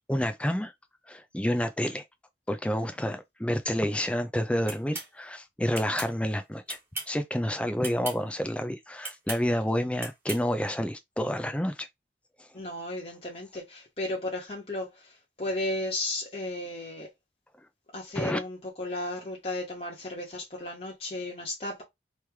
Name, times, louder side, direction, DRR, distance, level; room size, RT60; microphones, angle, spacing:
voice 1, 0.1-0.7 1.1-2.0 2.5-6.8 7.1-11.9 12.4-12.5 18.2-18.4, equal, 5° left, 0.4 m, -29 dB
sound 1, 4.7-5.1 5.7-6.1 6.7-7.2 7.8-8.2 9.0-9.4 10.0-10.4, right 3 dB, 15° right, 1.4 m, -37 dB
voice 2, 12.5-17.1 17.9-21.8, left 1 dB, 35° left, 1.1 m, -34 dB
3.2 x 3.0 x 3.5 m
head